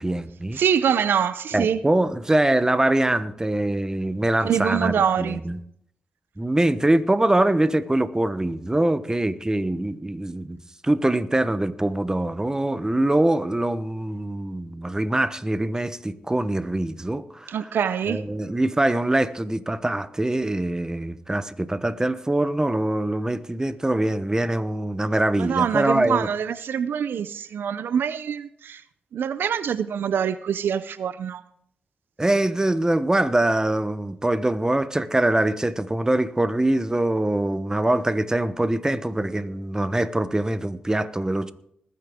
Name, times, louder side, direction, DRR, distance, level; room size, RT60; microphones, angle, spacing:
voice 1, 0.0-0.6 1.5-5.6 6.4-10.6 10.8-17.8 18.1-26.3 32.2-41.5, right 1 dB, 20° right, 1.0 m, -23 dB
voice 2, 0.6-1.8 4.4-5.4 17.5-18.2 25.4-28.8 29.1-31.4, right 8 dB, 75° right, 0.5 m, -24 dB
20.5 x 9.6 x 3.6 m
supercardioid pair, 50°, 4 cm